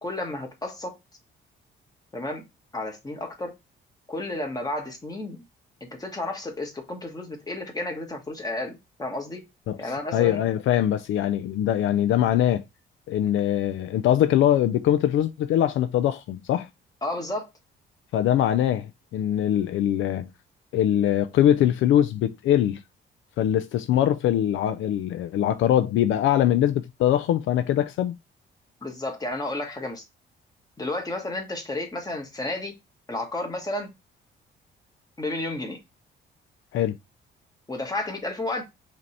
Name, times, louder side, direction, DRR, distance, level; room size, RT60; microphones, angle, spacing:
voice 1, 0.0-1.0 2.1-2.4 2.7-3.5 4.1-5.4 5.8-9.4 9.8-10.4 17.0-17.5 28.8-30.0 30.8-32.7 33.1-33.9 35.2-35.8 37.7-38.6, left 2 dB, 20° left, 1.5 m, -32 dB
voice 2, 10.1-12.6 13.1-16.7 18.1-20.3 20.7-22.8 23.4-28.2 36.7-37.0, left 11 dB, 75° left, 0.4 m, -22 dB
5.0 x 2.9 x 3.1 m
cardioid pair, 90°, 20 cm